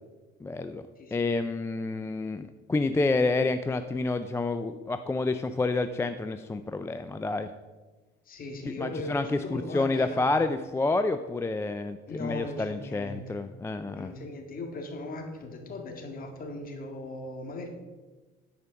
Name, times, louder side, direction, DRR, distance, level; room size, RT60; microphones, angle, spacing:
voice 1, 0.4-0.8 1.1-7.5 8.7-14.1, left 3 dB, 10° left, 9 dB, 0.3 m, -29 dB
voice 2, 1.0-1.4 8.3-10.3 12.1-13.4 13.9-17.7, left 2 dB, 40° left, 3 dB, 1.9 m, -38 dB
9.6 x 5.0 x 5.8 m, 1.2 s
cardioid pair, 105°, 21 cm